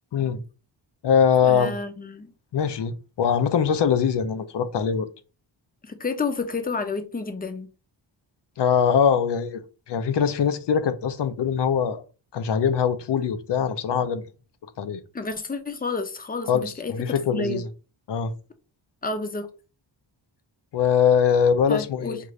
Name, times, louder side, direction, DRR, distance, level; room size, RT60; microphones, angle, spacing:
voice 1, 0.1-0.4 1.0-1.8 2.5-5.1 8.6-9.6 9.9-12.0 12.3-14.2 14.8-15.0 16.5-17.7 18.1-18.3 20.7-22.3, left 7 dB, 60° left, 0.6 m, -22 dB
voice 2, 1.4-2.3 5.8-7.7 15.1-16.5 16.8-16.9 17.3-17.6 19.0-19.5 21.7-22.2, left 3 dB, 20° left, 0.6 m, -30 dB
5.1 x 2.5 x 3.1 m
wide cardioid pair, 120°, 46 cm